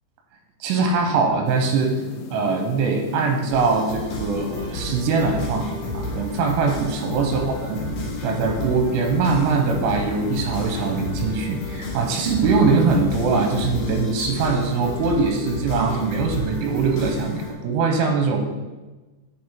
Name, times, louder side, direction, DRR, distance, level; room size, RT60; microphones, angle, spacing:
voice 1, 0.6-1.9 2.3-5.7 5.9-7.8 8.2-18.4, right 4 dB, 90° right, 3 dB, 3.2 m, -22 dB
sound 1, 1.5-14.0, left 7 dB, 85° left, 2.7 m, -37 dB
sound 2, 3.5-17.5, left 2 dB, 60° left, 2.4 m, -32 dB
8.7 x 6.2 x 3.7 m, 1.2 s
omnidirectional pair, 5.7 m